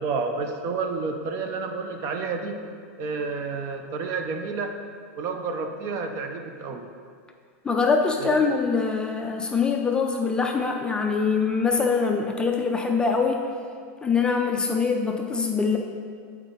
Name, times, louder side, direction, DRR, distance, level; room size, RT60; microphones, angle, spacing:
voice 1, 0.0-2.6 3.0-4.7 5.1-6.9 8.2-8.3, right 4 dB, 40° right, 5 dB, 0.7 m, -30 dB
voice 2, 7.6-13.5 14.0-15.8, left 5 dB, 10° left, 2 dB, 0.4 m, -23 dB
8.0 x 4.5 x 4.0 m, 2.1 s
supercardioid pair, 140°, 8 cm